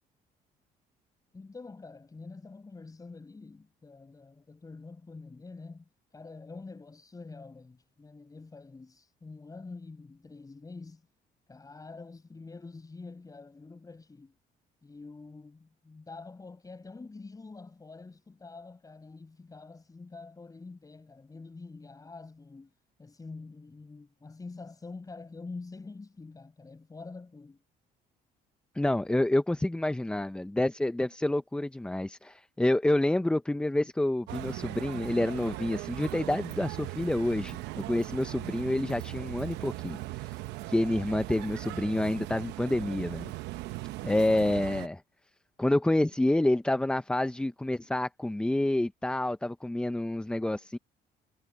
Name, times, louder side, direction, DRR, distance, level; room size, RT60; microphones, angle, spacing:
voice 1, 1.3-5.8 6.1-11.1 11.5-14.4 14.8-22.7 23.0-27.6, left 3 dB, 20° left, 6.0 m, -46 dB
voice 2, 28.8-40.4 40.7-43.3 44.0-45.0 45.6-50.8, left 1 dB, 5° left, 0.6 m, -28 dB
sound 1, 34.3-44.9, right 18 dB, 90° right, 0.9 m, -39 dB
cardioid pair, 110°, 17 cm